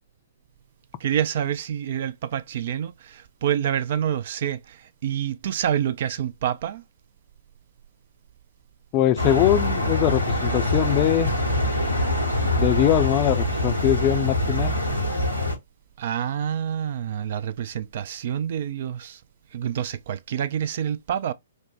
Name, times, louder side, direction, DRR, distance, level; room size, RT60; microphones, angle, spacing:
voice 1, 1.0-6.8 16.0-19.2 19.5-21.3, right 9 dB, 45° right, 0.3 m, -27 dB
voice 2, 8.9-11.3 12.6-14.7, left 12 dB, 30° left, 0.4 m, -22 dB
sound 1, 9.2-15.6, left 1 dB, 85° right, 1.1 m, -24 dB
5.1 x 2.0 x 2.5 m
figure-of-eight pair, 120°, 0 cm